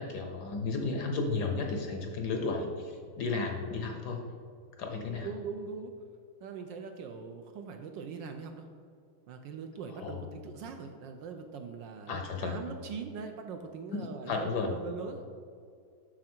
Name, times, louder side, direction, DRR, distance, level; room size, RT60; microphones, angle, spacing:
voice 1, 0.0-4.3 4.8-5.3 10.0-10.3 12.1-12.6 13.9-14.8, left 4 dB, 65° left, 3 dB, 1.1 m, -33 dB
voice 2, 5.1-5.9 6.4-8.7 9.3-15.3, right 5 dB, 75° right, 5 dB, 1.1 m, -42 dB
7.3 x 6.1 x 4.4 m, 2.2 s
omnidirectional pair, 2.3 m